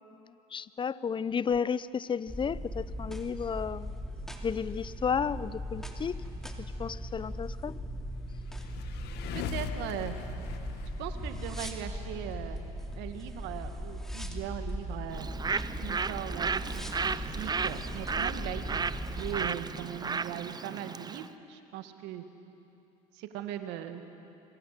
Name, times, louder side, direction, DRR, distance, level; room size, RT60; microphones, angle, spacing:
voice 1, 0.3-4.0 4.4-6.2 6.8-7.7, left 6 dB, 25° left, 18 dB, 0.7 m, -32 dB
sound 1, 2.3-19.5, equal, ahead, 2.9 m, -39 dB
sound 2, 8.4-11.9, left 10 dB, 60° left, 1.5 m, -40 dB
voice 2, 9.3-10.2 11.0-12.6 13.0-15.3 15.8-22.2 23.1-24.0, right 11 dB, 70° right, 7 dB, 2.0 m, -39 dB
Bird, 15.1-21.3, right 5 dB, 20° right, 0.7 m, -34 dB
26.5 x 22.5 x 6.8 m, 2.8 s
hypercardioid pair, 70°, 19 cm